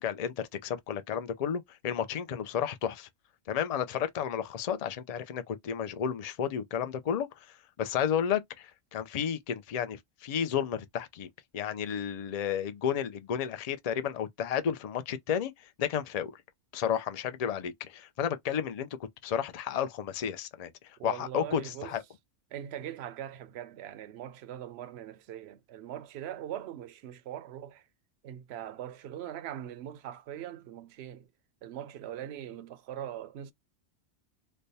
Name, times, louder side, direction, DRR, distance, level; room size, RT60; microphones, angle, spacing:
voice 1, 0.0-3.1 3.5-11.3 11.5-16.4 16.7-22.0, left 8 dB, 55° left, 0.4 m, -32 dB
voice 2, 21.0-22.0 22.5-27.9 28.2-31.3 31.6-33.5, right 11 dB, 65° right, 0.7 m, -41 dB
3.4 x 2.1 x 4.0 m
omnidirectional pair, 1.3 m